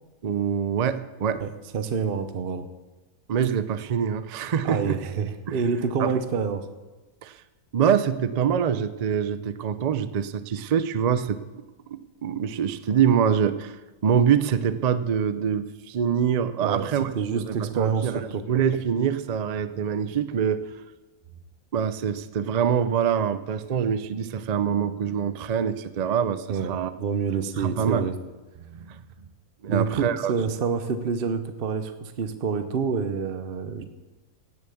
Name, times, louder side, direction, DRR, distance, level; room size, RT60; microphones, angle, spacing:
voice 1, 0.2-1.4 3.3-5.0 5.5-5.6 6.0-6.1 7.2-7.4 7.7-11.4 11.9-13.8 14.0-18.2 18.5-20.7 21.7-26.9 27.6-28.1 28.7-29.0 29.6-30.3, right 8 dB, 70° right, 13 dB, 0.3 m, -25 dB
voice 2, 1.4-2.7 4.6-6.6 16.6-16.9 17.1-18.4 26.5-28.2 29.7-33.8, right 6 dB, 45° right, 9 dB, 0.9 m, -27 dB
17.5 x 7.1 x 7.1 m, 1.2 s
omnidirectional pair, 1.5 m